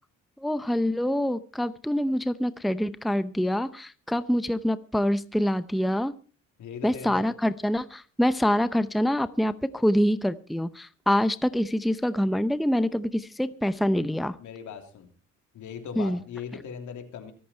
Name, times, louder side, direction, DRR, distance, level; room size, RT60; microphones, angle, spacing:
voice 1, 0.4-6.1 6.8-14.4 16.0-16.2, equal, ahead, 14 dB, 0.7 m, -25 dB
voice 2, 6.6-7.3 14.4-15.1 15.5-17.3, left 7 dB, 75° left, 6 dB, 3.4 m, -39 dB
24.0 x 8.6 x 4.5 m, 0.38 s
cardioid pair, 90°, 30 cm